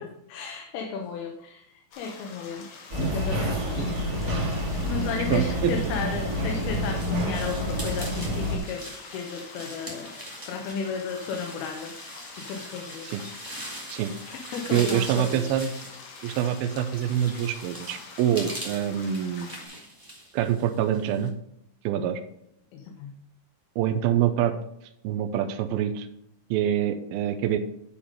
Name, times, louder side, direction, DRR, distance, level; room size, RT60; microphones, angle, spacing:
voice 1, 0.0-2.7 3.1-4.5 4.8-10.2 10.5-13.4 14.5-15.6 22.7-23.1, left 5 dB, 85° left, 2 dB, 2.9 m, -34 dB
sound 1, 1.9-19.7, left 5 dB, 65° left, 2.8 m, -46 dB
sound 2, 2.9-8.6, equal, 30° right, 1.9 m, -28 dB
voice 2, 5.3-5.7 13.1-13.2 13.9-14.1 14.7-15.7 16.2-19.5 20.3-21.3 21.8-22.2 23.8-24.5 25.0-26.1 26.5-27.6, right 10 dB, 80° right, 7 dB, 2.5 m, -25 dB
sound 3, 6.7-21.3, right 1 dB, 15° right, 0.7 m, -42 dB
10.0 x 4.9 x 5.1 m, 0.76 s
omnidirectional pair, 4.4 m